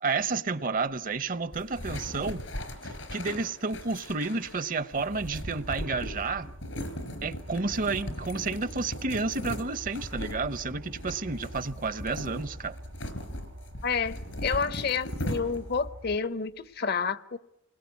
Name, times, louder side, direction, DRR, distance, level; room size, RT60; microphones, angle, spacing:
voice 1, 0.0-2.4 3.1-6.5 7.2-12.8, right 4 dB, 45° right, 0.8 m, -31 dB
sound 1, 1.5-15.9, left 1 dB, 80° left, 4.0 m, -39 dB
sound 2, 5.0-16.2, equal, 90° right, 2.0 m, -45 dB
voice 2, 13.8-17.4, left 5 dB, 55° left, 0.9 m, -29 dB
29.0 x 21.0 x 8.4 m
head